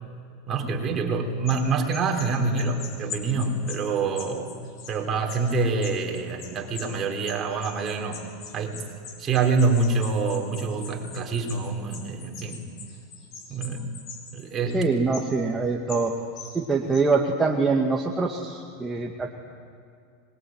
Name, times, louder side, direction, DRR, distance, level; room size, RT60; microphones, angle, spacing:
voice 1, 0.5-4.6 4.9-8.3 8.5-8.8 9.2-12.7 13.5-13.9 14.3-14.8, right 4 dB, 30° right, 2 dB, 4.4 m, -26 dB
sound 1, 1.5-7.0 7.3-14.4 14.7-14.8 15.1-15.3 15.9-16.1 16.4-16.6 16.9-17.0, left 7 dB, 45° left, 5.8 m, -42 dB
voice 2, 14.7-16.2 16.5-19.3, right 4 dB, 15° right, 1 dB, 2.2 m, -24 dB
25.0 x 22.0 x 9.6 m, 2.3 s
hypercardioid pair, 110°, 0 cm